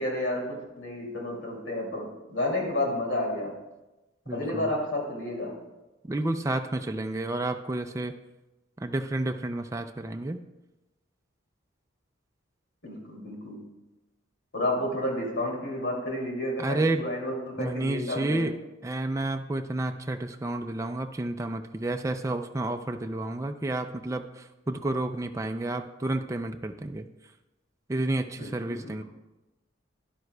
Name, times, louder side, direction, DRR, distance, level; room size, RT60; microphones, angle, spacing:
voice 1, 0.0-3.6 4.3-5.7 12.8-13.6 14.5-18.5 28.4-29.0, left 1 dB, 70° left, -1 dB, 2.6 m, -31 dB
voice 2, 4.3-4.7 6.1-8.1 8.8-10.4 16.6-17.0 17.6-18.5 18.8-27.1 27.9-29.0, right 2 dB, 15° right, 6 dB, 0.4 m, -30 dB
12.5 x 10.5 x 2.2 m, 1.0 s
head